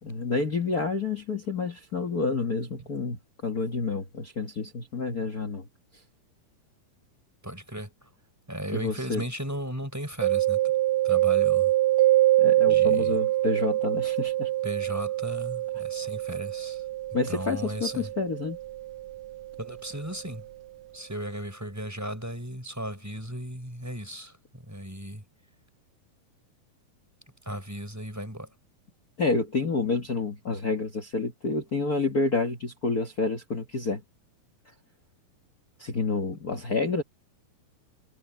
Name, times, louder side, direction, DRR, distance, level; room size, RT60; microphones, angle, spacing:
voice 1, 0.0-5.7 8.7-9.3 12.4-14.5 17.1-18.6 29.2-34.0 35.8-37.0, left 4 dB, 60° left, 0.9 m, -29 dB
voice 2, 7.4-7.9 8.5-10.6 11.0-11.7 12.7-13.2 14.6-16.8 17.3-18.1 19.6-20.4 20.9-25.2 27.5-28.5, equal, 5° right, 6.0 m, -36 dB
Mallet percussion, 10.2-19.8, right 15 dB, 75° right, 2.0 m, -25 dB
omnidirectional pair, 4.2 m